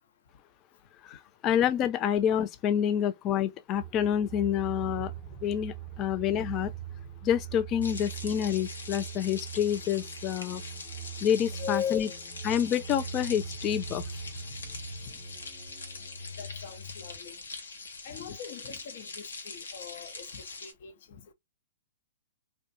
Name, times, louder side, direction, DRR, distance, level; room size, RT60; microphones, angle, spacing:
voice 1, 1.0-5.1 5.4-6.7 7.2-10.6 11.2-12.1 12.4-14.0, left 9 dB, 30° left, 0.3 m, -28 dB
sound 1, 3.7-17.2, right 6 dB, 5° left, 0.8 m, -42 dB
sound 2, 7.8-20.7, left 4 dB, 85° left, 0.8 m, -43 dB
voice 2, 11.6-12.2 16.4-17.4 18.0-20.9, left 8 dB, 55° left, 0.7 m, -38 dB
2.5 x 2.2 x 2.6 m
hypercardioid pair, 125°, 0 cm